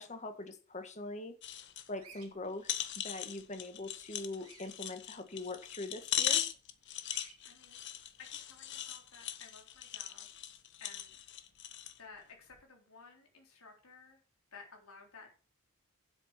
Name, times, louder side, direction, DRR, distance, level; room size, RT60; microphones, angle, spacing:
voice 1, 0.0-1.3 1.9-6.4, left 2 dB, 35° left, 8 dB, 1.7 m, -42 dB
sound 1, 1.4-1.9 2.2-2.3 2.6-12.0 12.5-12.6, left 10 dB, 55° left, 1.1 m, -39 dB
Bird vocalization bird call bird song, 2.0-2.3 4.4-4.7 7.0-7.4, right 7 dB, 90° right, 3.5 m, -55 dB
voice 2, 7.4-7.8 8.2-10.3 10.8-11.2 12.0-14.2 14.5-15.3, left 4 dB, 85° left, 1 dB, 4.0 m, -55 dB
9.9 x 7.9 x 6.0 m, 0.37 s
head